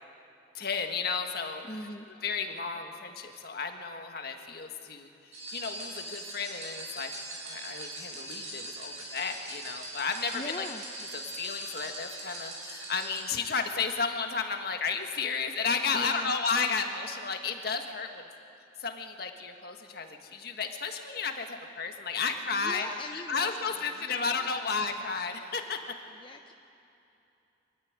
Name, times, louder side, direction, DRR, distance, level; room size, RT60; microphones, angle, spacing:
voice 1, 0.5-1.6 2.1-7.1 7.4-10.7 11.1-18.3 18.8-25.8, left 5 dB, 55° left, 4 dB, 1.7 m, -33 dB
voice 2, 1.6-2.1 10.3-10.8 15.9-16.3 22.5-24.9 26.1-26.5, left 2 dB, 25° left, 4 dB, 0.7 m, -42 dB
sound 1, 5.3-13.3, right 1 dB, 40° right, 5.6 m, -41 dB
23.5 x 13.5 x 9.7 m, 2.8 s
head